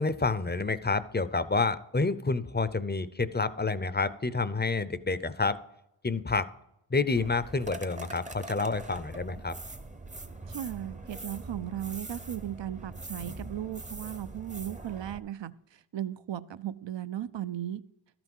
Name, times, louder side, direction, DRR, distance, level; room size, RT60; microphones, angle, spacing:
voice 1, 0.0-5.6 6.0-6.5 6.9-9.5, left 3 dB, 20° left, 14 dB, 0.5 m, -29 dB
sound 1, 7.2-15.2, right 2 dB, 15° right, 0.7 m, -43 dB
voice 2, 10.5-15.5 15.9-17.8, right 11 dB, 65° right, 16 dB, 0.6 m, -36 dB
13.0 x 6.0 x 5.4 m, 0.82 s
wide cardioid pair, 70°, 49 cm